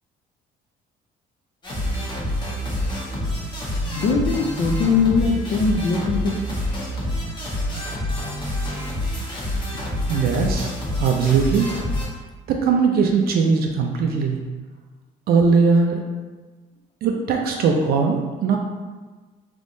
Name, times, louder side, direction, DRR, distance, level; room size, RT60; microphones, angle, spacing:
sound 1, 1.6-12.0, left 1 dB, 25° left, 1.0 m, -27 dB
voice 1, 4.0-6.4 9.7-9.8, left 4 dB, 55° left, 1 dB, 0.5 m, -21 dB
voice 2, 10.1-10.7 11.0-11.7 12.5-14.4 15.3-16.0 17.0-18.6, right 5 dB, 65° right, 2 dB, 0.4 m, -19 dB
3.5 x 3.0 x 2.6 m, 1.3 s
cardioid pair, 110°, 17 cm